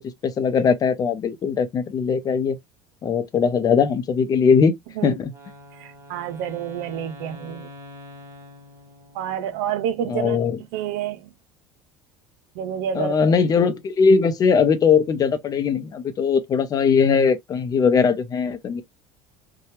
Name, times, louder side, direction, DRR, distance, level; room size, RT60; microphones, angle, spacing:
voice 1, 0.2-2.6 3.0-4.8 5.0-5.3 10.1-10.6 12.9-18.8, left 6 dB, 35° left, 0.6 m, -20 dB
Wind instrument woodwind instrument, 5.3-9.5, left 1 dB, 25° right, 1.1 m, -44 dB
voice 2, 5.7-7.7 9.1-10.4 10.7-11.3 12.5-13.1, right 9 dB, 75° right, 0.5 m, -28 dB
2.8 x 2.2 x 3.1 m
supercardioid pair, 95°, 11 cm